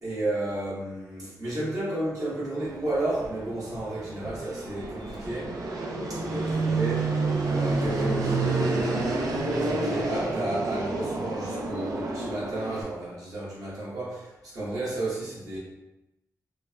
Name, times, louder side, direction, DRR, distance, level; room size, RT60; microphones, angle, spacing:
voice 1, 0.0-5.5 6.1-9.1 9.6-15.6, right 1 dB, 65° right, -7 dB, 1.2 m, -32 dB
Fixed-wing aircraft airplane, 2.6-12.8, right 3 dB, 85° right, 0.4 m, -29 dB
3.1 x 2.1 x 2.4 m, 0.94 s
cardioid pair, 80°, 6 cm